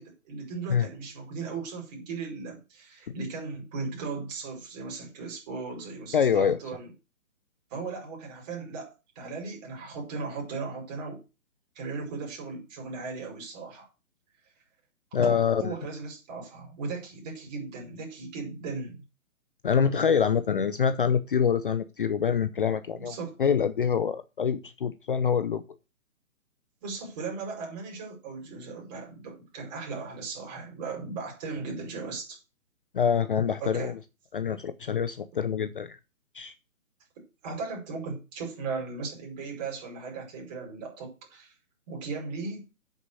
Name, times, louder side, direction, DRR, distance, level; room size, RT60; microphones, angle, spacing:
voice 1, 0.0-6.9 7.7-11.2 11.8-13.9 15.2-19.0 23.0-23.4 26.8-32.4 33.6-33.9 37.4-41.5 41.9-42.7, right 4 dB, 30° right, 0 dB, 5.3 m, -37 dB
voice 2, 6.1-6.6 15.1-15.7 19.6-25.6 32.9-34.0 34.3-36.0 36.3-36.5, left 7 dB, 40° left, 12 dB, 0.6 m, -25 dB
8.2 x 6.7 x 6.3 m, 0.29 s
hypercardioid pair, 155°, 42 cm